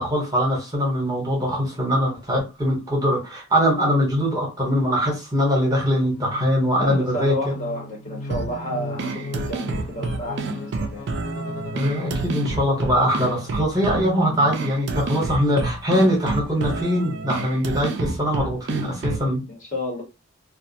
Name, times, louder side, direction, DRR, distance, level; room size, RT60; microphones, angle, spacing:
voice 1, 0.0-7.3 11.7-19.4, equal, 15° right, 0.9 m, -22 dB
sound 1, 6.1-14.0, left 2 dB, 75° left, 0.6 m, -37 dB
voice 2, 6.8-11.0 18.0-18.1 19.5-20.0, left 1 dB, 35° left, 0.8 m, -31 dB
sound 2, 8.3-19.3, right 3 dB, 50° right, 0.3 m, -29 dB
2.3 x 2.0 x 2.6 m
head